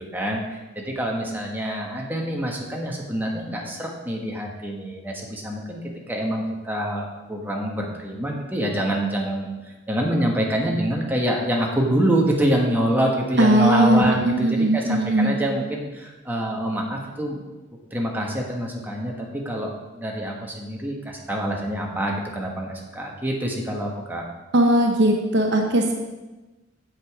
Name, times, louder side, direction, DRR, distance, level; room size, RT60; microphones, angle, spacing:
voice 1, 0.1-5.8 6.1-9.5 9.9-17.4 17.9-24.2, right 1 dB, 10° right, -1 dB, 1.3 m, -26 dB
voice 2, 13.4-15.4 24.5-25.9, right 1 dB, 55° right, 3 dB, 0.8 m, -19 dB
7.7 x 7.5 x 4.9 m, 1.1 s
head